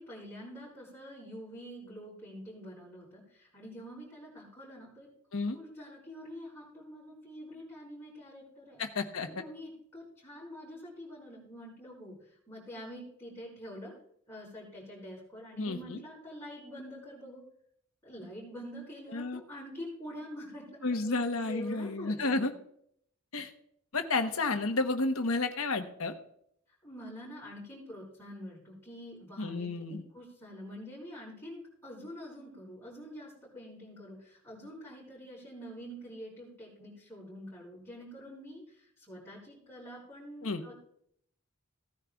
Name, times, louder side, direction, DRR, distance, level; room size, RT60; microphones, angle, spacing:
voice 1, 0.0-5.1 5.5-8.8 9.2-13.9 14.3-17.4 18.0-22.6 26.8-40.7, equal, 10° left, -8 dB, 5.4 m, -46 dB
voice 2, 8.8-9.3 15.6-16.0 19.1-19.4 20.8-22.5 23.3-23.5 23.9-26.1 29.4-30.0 40.4-40.6, left 3 dB, 75° left, 6 dB, 1.1 m, -31 dB
17.0 x 9.9 x 2.3 m, 0.69 s
head